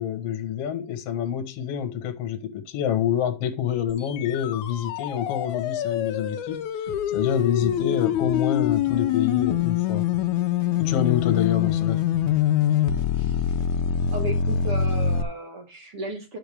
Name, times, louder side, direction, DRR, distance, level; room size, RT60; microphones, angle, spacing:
voice 1, 0.0-10.1 10.8-12.1, left 9 dB, 55° left, 2.0 m, -27 dB
sound 1, 3.9-15.2, left 9 dB, 75° left, 2.0 m, -25 dB
sound 2, 6.9-14.8, equal, 85° right, 0.3 m, -43 dB
voice 2, 7.6-8.0 13.1-13.6 14.1-16.4, right 2 dB, 50° right, 2.4 m, -35 dB
11.5 x 7.0 x 3.5 m
omnidirectional pair, 3.8 m